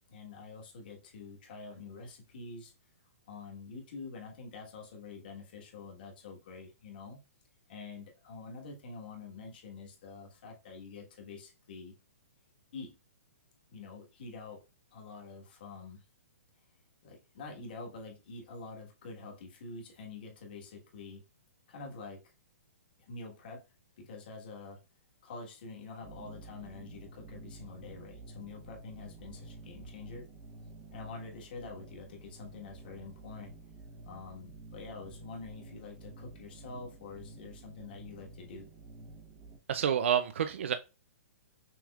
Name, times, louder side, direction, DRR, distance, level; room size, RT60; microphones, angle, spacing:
voice 1, 0.1-2.7 3.3-7.2 7.7-11.9 12.7-12.9 13.7-14.6 14.9-16.0 17.0-21.2 21.7-22.2 23.1-23.6 24.0-24.8 25.2-30.3 30.9-33.5 34.0-38.7, left 4 dB, 40° left, 1.5 m, -46 dB
sound 1, 26.0-39.6, right 2 dB, 15° right, 0.8 m, -51 dB
voice 2, 39.7-40.7, right 9 dB, 55° right, 0.4 m, -28 dB
6.1 x 3.5 x 2.4 m
hypercardioid pair, 175°, 8 cm